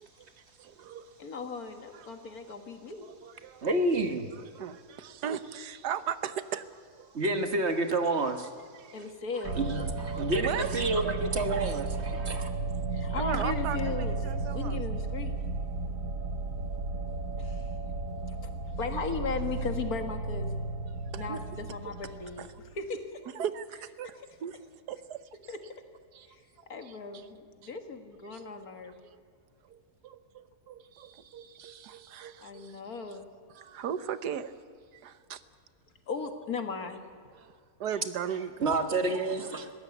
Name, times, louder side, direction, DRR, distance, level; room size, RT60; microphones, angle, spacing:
voice 1, 0.6-1.1 2.0-2.1 3.0-3.7 4.5-6.6 7.0-7.1 7.7-7.8 8.7-9.0 10.2-10.8 12.3-12.4 13.2-14.8 18.1-18.5 21.1-21.4 22.4-22.5 23.3-24.6 24.9-25.2 25.5-25.6 26.1-26.3 26.6-27.0 28.3-28.5 29.1-29.2 29.7-33.0 33.5-34.5 34.9-35.4 37.3-38.7 39.3-39.7, right 8 dB, 85° right, 13 dB, 1.5 m, -38 dB
voice 2, 1.2-3.1 8.9-9.6 12.9-15.3 17.4-17.7 18.8-20.6 21.1-22.5 22.7-23.2 25.5-25.6 26.3-26.4 26.7-29.0 32.4-33.3 36.1-37.0, left 4 dB, 65° left, 6 dB, 2.2 m, -37 dB
voice 3, 3.6-4.3 7.1-8.5 9.5-12.5 38.6-39.7, right 2 dB, 45° right, 7 dB, 1.6 m, -29 dB
sound 1, 9.4-22.8, right 3 dB, 60° right, 1.7 m, -34 dB
21.5 x 16.5 x 8.4 m, 2.1 s
omnidirectional pair, 1.7 m